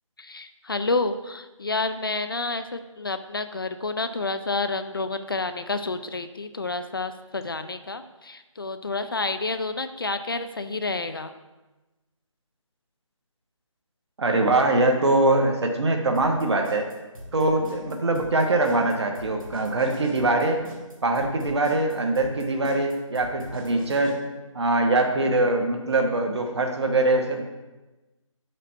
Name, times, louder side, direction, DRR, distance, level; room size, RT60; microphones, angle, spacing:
voice 1, 0.2-11.3, left 3 dB, 45° left, 9 dB, 0.4 m, -29 dB
voice 2, 14.2-16.9 17.3-20.6 21.0-24.2 24.5-27.4, right 2 dB, 55° right, 3 dB, 1.1 m, -23 dB
sound 1, 16.1-24.1, equal, 80° right, 2.5 m, -43 dB
7.4 x 5.1 x 4.3 m, 1.1 s
figure-of-eight pair, 165°, 17 cm